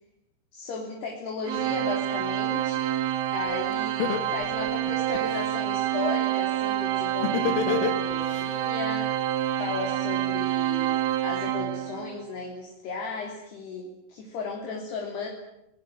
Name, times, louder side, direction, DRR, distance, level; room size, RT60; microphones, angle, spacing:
voice 1, 0.5-3.1 3.3-9.2 9.6-15.3, left 4 dB, 60° left, 0 dB, 5.2 m, -35 dB
Organ, 1.5-12.2, right 12 dB, 75° right, 4.1 m, -27 dB
Laughter, 3.5-3.6 4.0-5.5 7.2-8.4, left 8 dB, 85° left, 5.0 m, -27 dB
27.0 x 20.5 x 9.3 m, 0.84 s
omnidirectional pair, 5.6 m